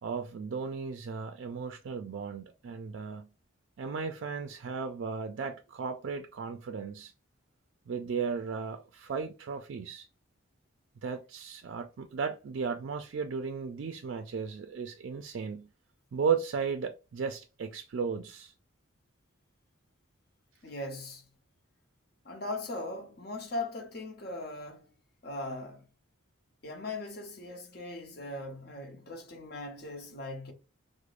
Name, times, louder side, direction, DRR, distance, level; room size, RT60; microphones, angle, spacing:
voice 1, 0.0-3.3 3.8-7.1 7.9-10.1 11.0-15.7 16.1-18.5, right 5 dB, 65° right, 0.3 m, -35 dB
voice 2, 20.6-21.3 22.2-24.9 25.2-25.9 26.6-30.5, left 2 dB, 50° left, 0.8 m, -39 dB
4.7 x 2.0 x 2.4 m
head